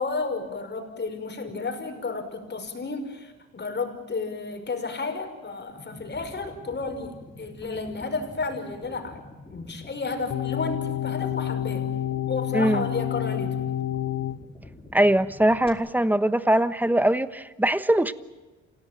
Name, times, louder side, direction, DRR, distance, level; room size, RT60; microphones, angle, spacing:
voice 1, 0.0-9.2 9.5-11.9 12.3-13.6, left 4 dB, 35° left, 5.7 m, -32 dB
sound 1, 5.7-15.7, left 2 dB, 20° left, 5.0 m, -47 dB
sound 2, 10.3-14.4, left 11 dB, 65° left, 1.0 m, -29 dB
voice 2, 12.5-12.8 14.9-18.1, right 1 dB, 5° right, 1.2 m, -21 dB
28.5 x 17.0 x 9.1 m
cardioid pair, 90°, 30 cm